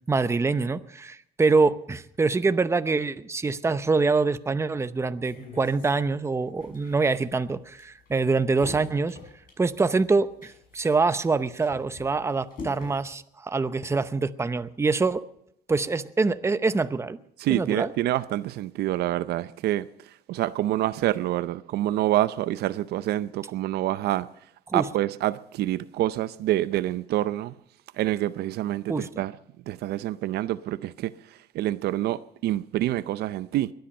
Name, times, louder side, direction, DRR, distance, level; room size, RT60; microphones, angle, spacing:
voice 1, 0.1-9.2 9.6-15.2 15.7-17.2 17.5-17.9 24.7-24.9 28.9-29.2, right 4 dB, 15° right, 0.8 m, -25 dB
sound 1, 5.2-13.0, left 3 dB, 55° left, 6.3 m, -46 dB
voice 2, 17.4-19.9 20.3-24.3 24.7-27.5 28.0-29.3 29.7-31.1 31.5-33.7, right 14 dB, 75° right, 0.6 m, -27 dB
22.0 x 10.5 x 5.5 m
cardioid pair, 110°, 17 cm